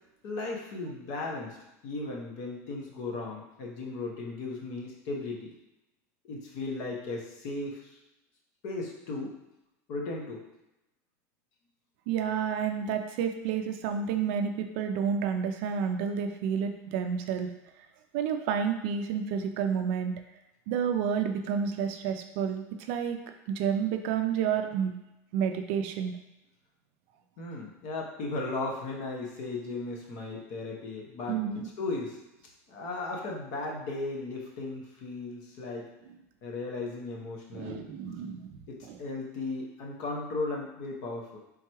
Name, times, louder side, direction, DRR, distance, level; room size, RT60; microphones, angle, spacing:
voice 1, 0.2-1.6 1.8-5.5 6.2-8.0 8.6-9.3 9.9-10.4 27.4-31.4 31.8-32.2 32.7-35.9 36.4-37.9 38.7-41.4, left 3 dB, 45° left, -1 dB, 1.0 m, -36 dB
voice 2, 12.1-17.5 18.1-20.1 20.7-23.2 23.5-24.9 25.3-26.1 31.3-31.7 37.5-39.0, right 7 dB, 50° right, 6 dB, 0.4 m, -30 dB
3.7 x 3.1 x 4.5 m, 0.94 s
supercardioid pair, 175°, 8 cm